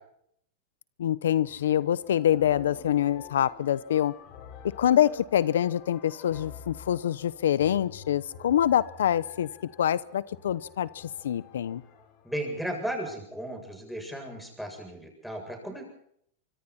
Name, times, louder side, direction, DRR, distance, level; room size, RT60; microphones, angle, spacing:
voice 1, 1.0-4.1 4.8-9.5 9.8-11.8, left 10 dB, 90° left, 18 dB, 0.8 m, -25 dB
sound 1, 1.5-12.8, left 7 dB, 50° left, 6.1 m, -49 dB
voice 2, 12.2-15.8, right 1 dB, ahead, 3 dB, 8.0 m, -35 dB
25.5 x 23.5 x 4.3 m, 0.68 s
supercardioid pair, 130°, 0 cm